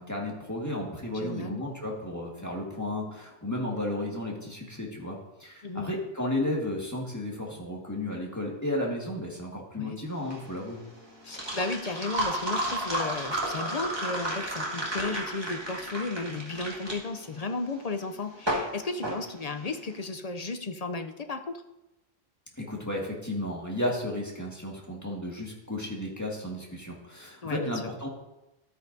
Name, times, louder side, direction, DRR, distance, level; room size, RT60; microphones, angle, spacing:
voice 1, 0.0-10.8 22.6-28.1, left 1 dB, 15° left, -2 dB, 1.8 m, -33 dB
voice 2, 1.1-1.6 5.6-6.0 9.8-10.0 11.2-21.6 27.4-27.8, left 3 dB, 45° left, 8 dB, 0.6 m, -34 dB
sound 1, 10.1-20.0, right 1 dB, 25° right, 2.0 m, -33 dB
12.5 x 9.1 x 2.7 m, 0.95 s
omnidirectional pair, 1.1 m